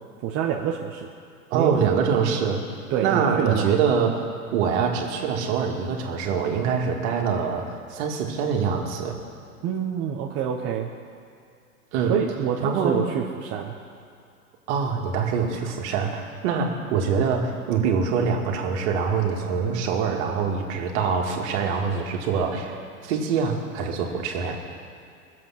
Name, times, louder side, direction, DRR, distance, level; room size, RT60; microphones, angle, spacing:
voice 1, 0.2-1.1 1.5-1.8 2.9-3.7 9.6-10.9 12.1-13.7, right 8 dB, 30° right, -1 dB, 1.1 m, -26 dB
voice 2, 1.5-2.6 3.0-4.2 4.5-9.2 11.9-12.2 12.6-13.0 14.7-24.6, right 6 dB, 50° right, 1 dB, 2.3 m, -24 dB
21.0 x 7.8 x 5.9 m, 2.4 s
hypercardioid pair, 115°, 45 cm